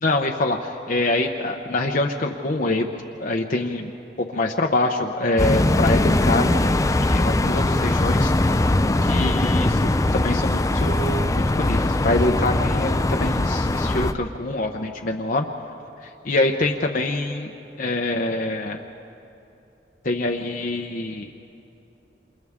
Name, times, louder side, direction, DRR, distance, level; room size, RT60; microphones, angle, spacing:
voice 1, 0.0-3.9 4.2-8.7 9.0-15.5 16.3-17.5 17.8-18.8 20.0-21.3, left 2 dB, 50° left, 1 dB, 0.9 m, -25 dB
sound 1, 5.4-14.1, left 2 dB, 20° left, 0.4 m, -21 dB
28.0 x 28.0 x 3.6 m, 2.8 s
head